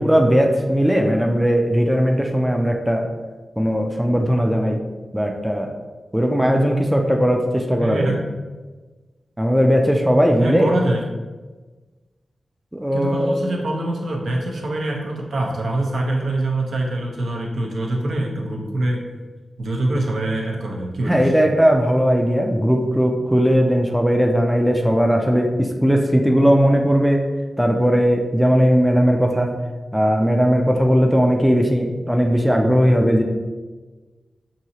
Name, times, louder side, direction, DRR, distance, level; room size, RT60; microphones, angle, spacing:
voice 1, 0.0-3.1 3.6-4.8 5.1-5.7 6.1-8.1 9.4-10.7 12.7-13.3 21.1-27.3 27.6-29.6 29.9-33.2, equal, 5° right, 2 dB, 0.4 m, -18 dB
voice 2, 7.8-8.2 10.4-11.0 12.9-19.0 19.6-21.3, right 1 dB, 80° right, -1 dB, 0.8 m, -24 dB
6.1 x 2.7 x 2.8 m, 1.3 s
wide cardioid pair, 155°, 0 cm